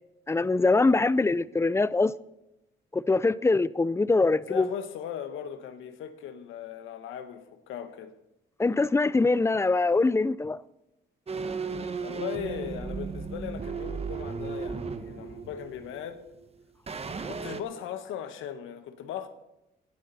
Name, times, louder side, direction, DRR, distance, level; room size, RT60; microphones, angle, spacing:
voice 1, 0.3-2.1 2.9-4.7 8.6-10.6, left 3 dB, 15° left, 0.4 m, -23 dB
voice 2, 4.5-8.1 12.0-16.2 17.3-19.3, left 9 dB, 90° left, 1.3 m, -38 dB
sound 1, 11.3-16.5 16.9-17.6, right 5 dB, 30° right, 1.1 m, -35 dB
18.0 x 12.0 x 4.1 m
cardioid pair, 90°, 20 cm